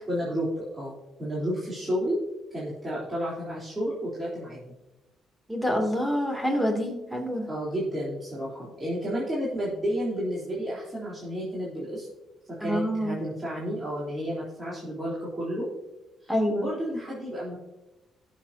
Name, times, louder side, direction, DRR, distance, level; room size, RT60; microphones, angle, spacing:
voice 1, 0.1-2.2 2.5-4.7 7.5-12.1 12.6-15.7 16.2-17.6, equal, 25° right, -8 dB, 3.7 m, -31 dB
voice 2, 5.5-7.5 12.6-13.2 16.3-16.7, equal, 5° right, 1 dB, 2.8 m, -27 dB
19.0 x 7.4 x 2.9 m, 1.0 s
cardioid pair, 90°, 0 cm